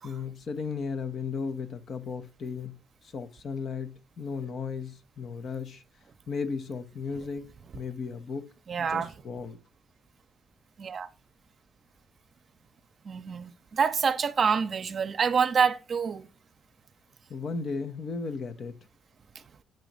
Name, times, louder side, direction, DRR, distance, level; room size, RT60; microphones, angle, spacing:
voice 1, 0.0-2.8 3.1-5.8 6.3-8.5 8.8-9.6 17.3-18.8, left 5 dB, 55° left, 1.0 m, -35 dB
voice 2, 8.7-9.1 10.8-11.1 13.0-16.3, right 6 dB, 45° right, 0.7 m, -27 dB
9.0 x 3.0 x 5.1 m
cardioid pair, 90°, 0 cm